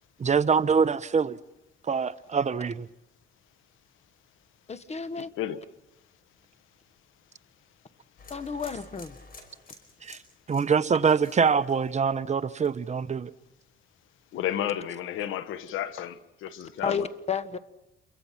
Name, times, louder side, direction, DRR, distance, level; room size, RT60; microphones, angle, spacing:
voice 1, 0.2-1.4 1.9-2.9 10.0-10.2 10.5-13.3, right 6 dB, 35° right, 0.9 m, -24 dB
voice 2, 4.7-5.3 8.3-9.2 16.8-17.6, left 6 dB, 35° left, 1.3 m, -31 dB
sound 1, 8.2-12.2 12.5-13.0, left 3 dB, 50° left, 5.2 m, -51 dB
voice 3, 14.3-17.1, left 11 dB, 90° left, 1.3 m, -32 dB
28.5 x 23.5 x 5.8 m
cardioid pair, 90°, 20 cm